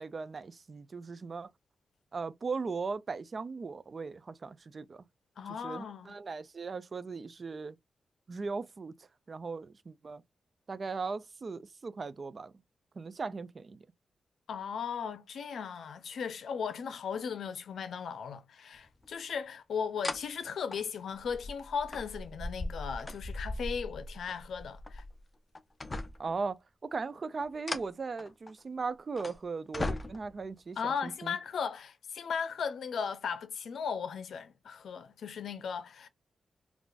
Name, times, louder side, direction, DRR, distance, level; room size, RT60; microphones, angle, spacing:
voice 1, 0.0-1.5 2.1-5.0 5.6-7.8 8.3-8.9 9.3-10.2 10.7-12.5 13.0-13.9 26.2-31.4, right 4 dB, 45° right, 0.3 m, -38 dB
voice 2, 5.4-6.1 14.5-25.0 30.8-36.1, left 6 dB, 80° left, 0.5 m, -37 dB
sound 1, 19.0-19.1 20.0-20.2 20.7-25.2 25.5-26.4 27.4-28.6 29.2-29.3 29.7-30.4 31.4-31.5, left 2 dB, 25° left, 0.5 m, -38 dB
3.7 x 2.4 x 2.4 m
wide cardioid pair, 100°, 0 cm